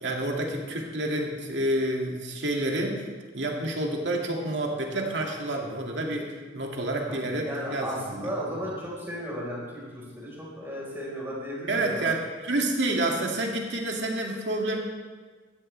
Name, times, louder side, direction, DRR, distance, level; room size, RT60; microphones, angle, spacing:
voice 1, 0.0-3.0 3.3-8.6 11.7-14.8, right 1 dB, 75° right, 0 dB, 2.2 m, -29 dB
voice 2, 7.1-12.2, equal, 10° right, -5 dB, 4.4 m, -35 dB
17.5 x 13.0 x 3.3 m, 1.4 s
head